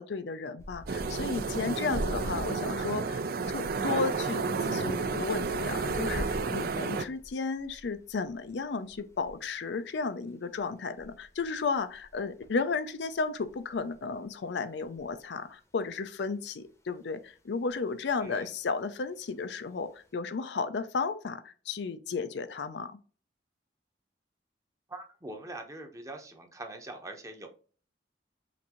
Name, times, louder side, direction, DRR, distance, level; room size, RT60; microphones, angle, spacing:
voice 1, 0.0-3.2 3.5-23.0, left 4 dB, 75° left, 10 dB, 0.5 m, -33 dB
sound 1, 0.6-15.9 16.4-17.3 17.7-19.0 19.2-20.1, equal, 15° left, 0.8 m, -44 dB
sound 2, 0.9-7.1, right 4 dB, 55° right, 0.4 m, -31 dB
voice 2, 18.2-18.5 24.9-27.5, right 2 dB, 20° right, 4 dB, 0.8 m, -43 dB
5.8 x 2.6 x 3.0 m, 0.39 s
head